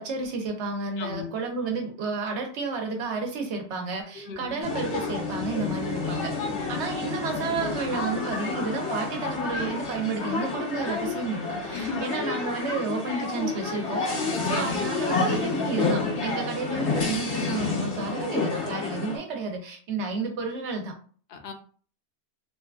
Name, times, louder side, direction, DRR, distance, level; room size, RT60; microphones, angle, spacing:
voice 1, 0.0-6.3 6.7-20.9, right 4 dB, 90° right, 3 dB, 1.0 m, -31 dB
voice 2, 1.0-1.4 4.1-4.6 6.5-6.9 11.7-12.0 14.3-14.9 21.3-21.5, left 5 dB, 70° left, 6 dB, 0.8 m, -36 dB
sound 1, 4.6-19.2, left 3 dB, 90° left, 1.2 m, -29 dB
3.0 x 2.3 x 2.3 m, 0.43 s
omnidirectional pair, 1.1 m